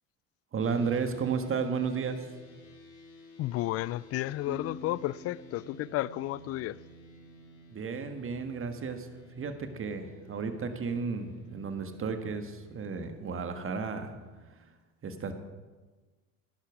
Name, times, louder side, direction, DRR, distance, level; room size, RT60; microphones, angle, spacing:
voice 1, 0.5-2.3 7.7-9.1 9.4-14.1 15.0-15.3, right 5 dB, 35° right, 1.5 m, -33 dB
sound 1, 0.6-14.4, equal, 70° left, 4.5 m, -53 dB
voice 2, 3.4-6.8, left 15 dB, 40° left, 0.4 m, -32 dB
sound 2, 4.5-7.9, left 2 dB, 20° left, 4.2 m, -49 dB
11.5 x 10.5 x 4.8 m
hypercardioid pair, 80°, 38 cm